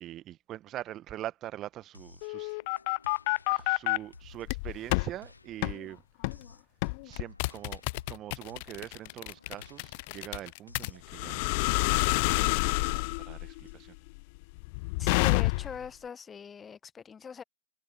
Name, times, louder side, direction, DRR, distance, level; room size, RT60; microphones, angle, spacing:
voice 1, 0.0-2.6 3.5-6.0 7.0-7.8 8.1-14.0, right 13 dB, 25° right, 1.2 m, -43 dB
sound 1, 1.9-13.7, left 3 dB, 80° left, 1.1 m, -56 dB
sound 2, 2.2-4.0 4.5-5.1 5.6-5.8 6.2-6.4 6.8-15.9, left 27 dB, 40° left, 0.4 m, -29 dB
voice 2, 15.0-17.4, left 6 dB, 15° left, 0.8 m, -41 dB
figure-of-eight pair, 110°, 0 cm